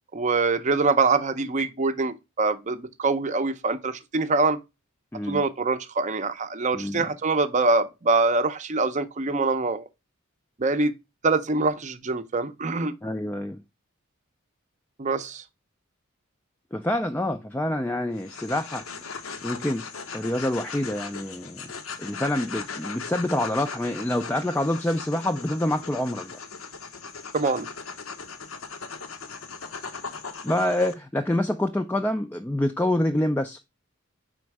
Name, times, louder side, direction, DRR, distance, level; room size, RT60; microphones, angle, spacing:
voice 1, 0.1-4.6 5.3-9.8 10.6-10.9 11.2-12.9 15.0-15.4 27.3-27.7, right 3 dB, 35° right, 0.6 m, -24 dB
voice 2, 6.7-7.0 13.0-13.6 16.7-18.8 19.4-19.8 20.1-21.6 22.0-26.3 30.4-33.6, left 1 dB, 10° left, 0.3 m, -26 dB
sound 1, 18.1-30.9, left 5 dB, 85° left, 0.9 m, -38 dB
5.1 x 4.3 x 4.6 m
head